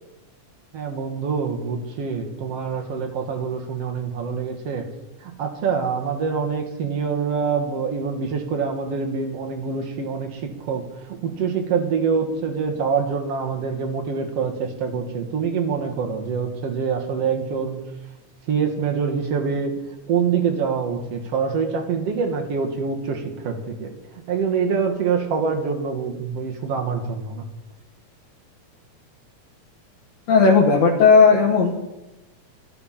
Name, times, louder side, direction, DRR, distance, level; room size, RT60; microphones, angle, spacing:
voice 1, 0.7-4.9 5.2-17.8 18.5-19.7 20.1-23.9 24.3-27.4, right 6 dB, 60° right, 4 dB, 2.5 m, -25 dB
voice 2, 30.3-31.7, left 4 dB, 65° left, -2 dB, 2.5 m, -14 dB
12.5 x 12.0 x 5.8 m, 1.0 s
omnidirectional pair, 3.3 m